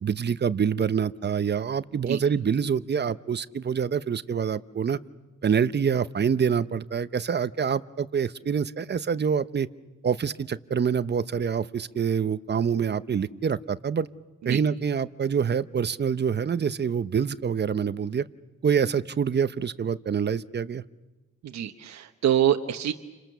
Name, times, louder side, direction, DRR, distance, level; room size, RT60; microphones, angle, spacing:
voice 1, 0.0-5.0 5.4-9.7 10.0-14.1 14.4-18.2 18.6-20.8, right 7 dB, 35° right, 14 dB, 0.8 m, -26 dB
voice 2, 21.4-22.9, right 10 dB, 60° right, 4 dB, 1.3 m, -25 dB
29.5 x 26.5 x 6.9 m, 1.1 s
cardioid pair, 90°, 30 cm